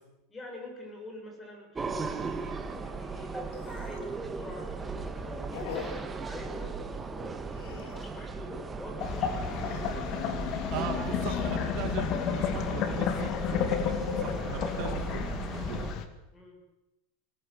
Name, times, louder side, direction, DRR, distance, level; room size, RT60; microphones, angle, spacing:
voice 1, 0.3-9.8 10.4-11.5 14.6-14.8 16.3-16.6, left 1 dB, 15° left, 1 dB, 6.9 m, -45 dB
sound 1, 1.7-15.9, right 4 dB, 15° right, 1.8 m, -37 dB
sound 2, 1.8-2.0 2.4-2.5 2.8-2.9 3.5-4.2 4.6-4.9 5.5-6.2 7.5-8.3 9.5-10.1 11.1-11.9 12.5-13.1, left 7 dB, 60° left, 3.7 m, -44 dB
sound 3, 9.0-16.1, left 9 dB, 40° left, 2.2 m, -31 dB
voice 2, 10.7-15.9, right 9 dB, 45° right, 6 dB, 2.4 m, -39 dB
22.5 x 19.0 x 8.1 m, 0.97 s
supercardioid pair, 160°, 0 cm